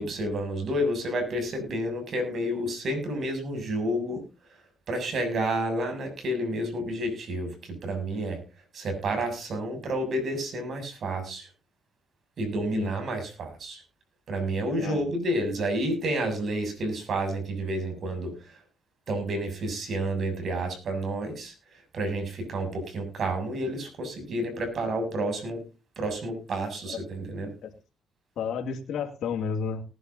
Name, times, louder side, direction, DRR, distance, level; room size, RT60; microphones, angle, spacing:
voice 1, 0.0-4.2 4.9-8.4 8.7-11.5 12.4-13.8 14.3-18.3 19.1-21.5 21.9-25.6 26.0-27.5, right 1 dB, 55° right, 7 dB, 7.1 m, -30 dB
voice 2, 28.4-29.8, left 6 dB, 75° left, 2 dB, 2.4 m, -31 dB
19.0 x 11.0 x 2.7 m, 0.32 s
cardioid pair, 90°, 0 cm